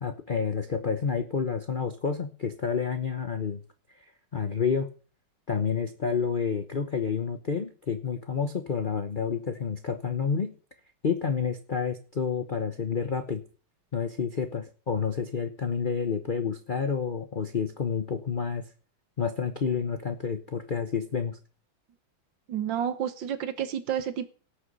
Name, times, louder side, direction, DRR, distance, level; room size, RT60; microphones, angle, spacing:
voice 1, 0.0-3.6 4.3-4.9 5.5-10.5 11.0-13.4 13.9-18.7 19.2-21.4, left 6 dB, 50° left, 7 dB, 0.6 m, -29 dB
voice 2, 22.5-24.3, right 9 dB, 65° right, 11 dB, 1.6 m, -30 dB
17.5 x 6.6 x 5.4 m, 0.39 s
omnidirectional pair, 2.3 m